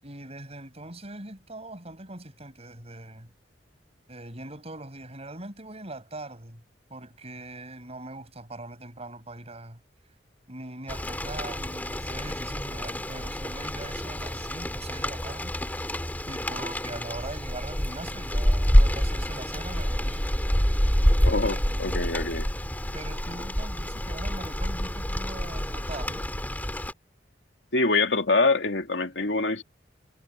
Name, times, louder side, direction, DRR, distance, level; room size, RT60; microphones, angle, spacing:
voice 1, 0.0-3.3 4.1-6.6 6.9-9.8 10.5-15.9 16.3-20.2 21.4-22.1 22.9-26.3, right 2 dB, 35° right, 6.9 m, -41 dB
Rain, 10.9-26.9, equal, 10° left, 2.2 m, -27 dB
voice 2, 21.2-22.5 27.7-29.6, left 3 dB, 85° left, 2.3 m, -25 dB
head